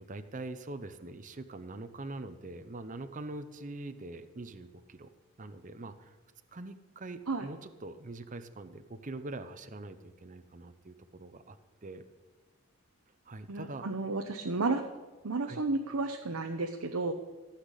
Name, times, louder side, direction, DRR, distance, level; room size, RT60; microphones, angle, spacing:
voice 1, 0.0-5.1 5.4-6.1 6.5-11.6 11.8-12.0 13.3-13.8 15.4-15.6, right 2 dB, 35° right, 10 dB, 0.7 m, -43 dB
voice 2, 13.5-14.8 15.2-17.1, right 3 dB, 85° right, 4 dB, 0.9 m, -32 dB
15.0 x 5.9 x 8.2 m, 1.3 s
head